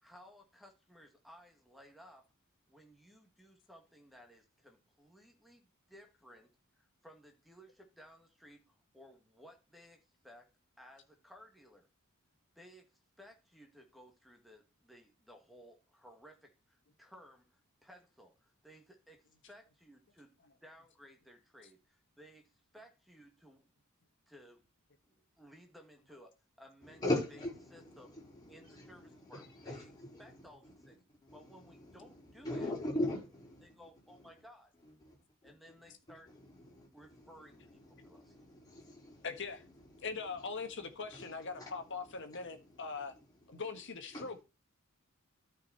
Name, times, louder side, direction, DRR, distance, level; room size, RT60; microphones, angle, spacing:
voice 1, 0.0-2.3 2.7-10.5 10.8-11.9 12.6-20.4 20.6-23.7 24.3-24.7 25.1-26.3 26.6-27.0 27.7-28.1 28.5-29.9 30.2-31.0 31.3-32.7 33.6-34.7 35.4-36.3 36.9-38.4, equal, ahead, 1.9 m, -58 dB
voice 2, 26.8-30.9 31.2-34.3 34.8-35.2 35.4-35.5 35.8-35.9 36.3-43.6 44.1-44.3, left 1 dB, 20° left, 4.8 m, -42 dB
voice 3, 39.2-39.6 40.0-43.1 43.5-44.4, left 4 dB, 60° left, 1.4 m, -41 dB
13.0 x 5.2 x 4.2 m
head